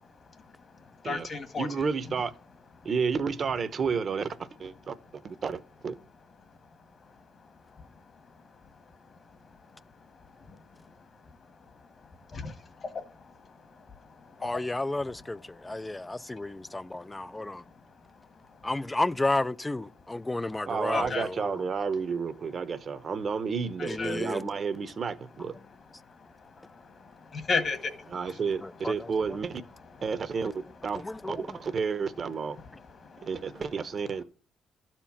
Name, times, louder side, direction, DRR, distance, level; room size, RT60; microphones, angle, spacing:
voice 1, 0.9-1.7 7.7-7.8 9.7-9.8 10.4-10.6 11.0-11.5 12.3-14.6 15.5-16.6 18.5-18.6 20.9-21.2 23.8-24.2 26.1-28.4 32.6-33.6, left 4 dB, 45° left, 1.7 m, -37 dB
voice 2, 1.6-2.3 2.8-4.9 5.2-6.0 20.7-25.6 28.1-29.6 30.0-32.6 33.2-34.2, right 5 dB, 50° right, 0.9 m, -31 dB
voice 3, 14.4-17.6 18.6-21.6 23.9-24.5 28.6-29.1 30.9-31.6, left 2 dB, 15° left, 0.4 m, -32 dB
12.5 x 4.5 x 7.3 m
cardioid pair, 90°, 0 cm